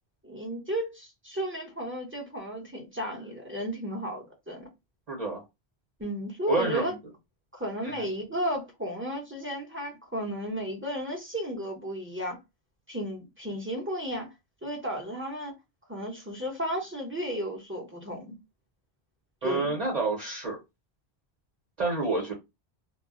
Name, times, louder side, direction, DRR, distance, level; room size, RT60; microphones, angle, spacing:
voice 1, 0.2-4.7 6.0-6.9 7.5-12.4 12.9-14.3 14.6-15.5 15.9-18.4 19.4-19.7, equal, 15° right, 0.8 m, -33 dB
voice 2, 5.1-5.4 6.5-6.9 7.8-8.0 19.4-20.6 21.8-22.3, right 3 dB, 45° right, 1.0 m, -29 dB
2.3 x 2.0 x 3.6 m
omnidirectional pair, 1.0 m